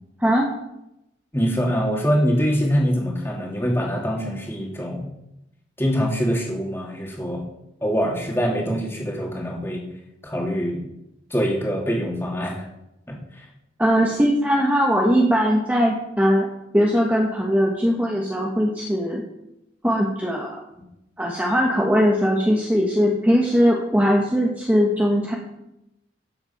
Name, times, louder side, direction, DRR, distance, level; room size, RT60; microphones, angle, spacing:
voice 1, 1.3-5.1 5.8-7.4 7.8-9.8 10.2-10.8 11.3-12.7 13.1-13.2, equal, 15° left, -1 dB, 2.6 m, -24 dB
voice 2, 13.8-16.5 16.7-19.2 19.8-20.6 21.2-25.3, equal, 10° right, -2 dB, 1.3 m, -20 dB
12.5 x 7.9 x 5.9 m, 0.86 s
head